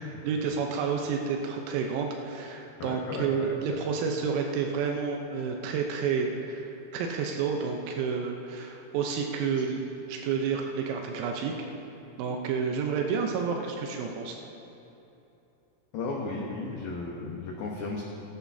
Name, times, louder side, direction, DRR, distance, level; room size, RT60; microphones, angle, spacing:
voice 1, 0.2-9.8 10.1-11.5 12.2-14.4, right 6 dB, 90° right, 2 dB, 3.6 m, -30 dB
voice 2, 2.8-3.5 15.9-18.0, left 3 dB, 80° left, -2 dB, 2.1 m, -35 dB
21.5 x 11.5 x 2.7 m, 2.9 s
omnidirectional pair, 5.9 m